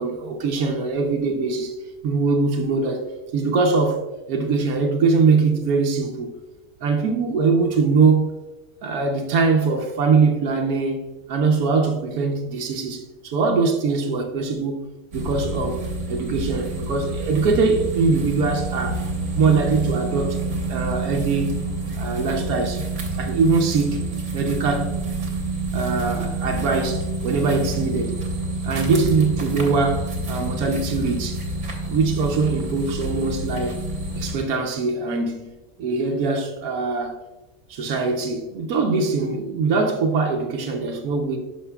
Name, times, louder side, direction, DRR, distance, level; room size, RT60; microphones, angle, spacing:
voice 1, 0.0-1.7 2.0-3.0 3.3-6.4 6.8-8.3 8.8-14.8 15.1-15.8 16.1-19.0 19.4-20.4 20.7-21.6 21.9-22.9 23.2-24.1 24.3-25.0 25.7-28.2 28.6-31.4 31.9-33.8 34.2-35.5 35.8-37.2 37.7-41.4, right 4 dB, 85° right, 1.2 m, -22 dB
sound 1, 15.1-34.3, right 2 dB, 65° right, 1.6 m, -28 dB
11.5 x 5.1 x 2.3 m
omnidirectional pair, 1.5 m